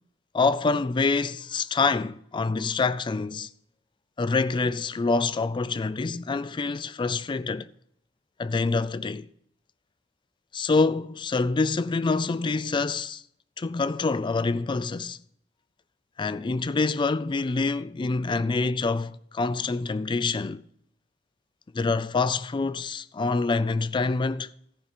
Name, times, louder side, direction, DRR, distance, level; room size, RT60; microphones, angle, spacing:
voice 1, 0.3-3.5 4.2-7.7 8.4-9.3 10.5-13.2 13.6-15.2 16.2-20.6 21.7-24.5, left 3 dB, 25° left, 0.3 m, -26 dB
14.0 x 5.6 x 5.1 m
head